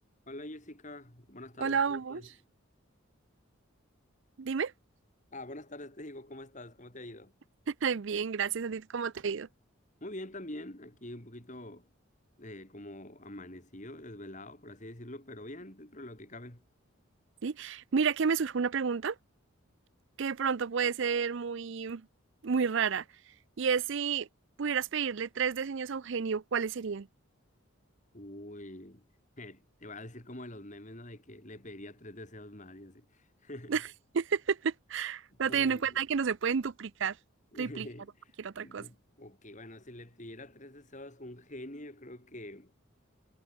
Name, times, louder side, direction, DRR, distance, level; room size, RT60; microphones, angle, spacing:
voice 1, 0.3-2.3 5.3-7.3 10.0-11.9 12.4-16.6 28.1-29.1 29.4-33.8 35.3-36.0 37.5-38.3 38.6-42.7, left 1 dB, 35° left, 3.5 m, -46 dB
voice 2, 1.6-2.2 4.4-4.7 7.7-9.5 17.4-19.2 20.2-22.1 22.4-23.0 23.6-24.3 24.6-27.1 33.7-33.8 34.1-37.2 37.6-37.9 38.4-38.8, right 6 dB, 55° right, 0.5 m, -30 dB
head